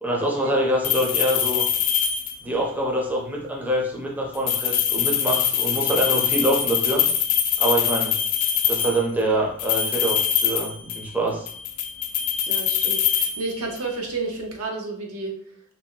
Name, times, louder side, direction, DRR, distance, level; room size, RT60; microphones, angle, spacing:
voice 1, 0.0-1.6 2.4-7.0 7.6-8.1 8.7-11.5, right 1 dB, 10° right, -2 dB, 0.5 m, -25 dB
sound 1, 0.8-2.6 4.3-9.1 9.6-11.2 11.5-13.9, left 9 dB, 90° left, 0.4 m, -23 dB
voice 2, 12.5-15.3, right 3 dB, 80° right, 1 dB, 0.7 m, -31 dB
2.7 x 2.0 x 3.8 m, 0.63 s
head